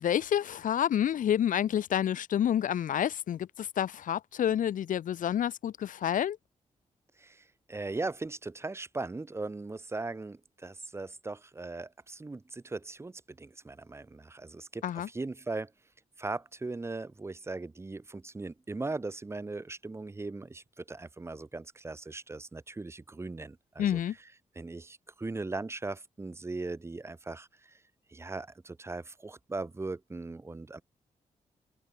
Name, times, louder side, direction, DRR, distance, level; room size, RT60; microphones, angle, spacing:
voice 1, 0.0-6.4 14.8-15.1 23.8-24.1, left 10 dB, 85° left, 1.3 m, -29 dB
voice 2, 7.2-15.7 16.2-24.0 24.5-27.8 28.1-30.8, right 3 dB, 20° right, 4.9 m, -39 dB
wide cardioid pair, 165°, 13 cm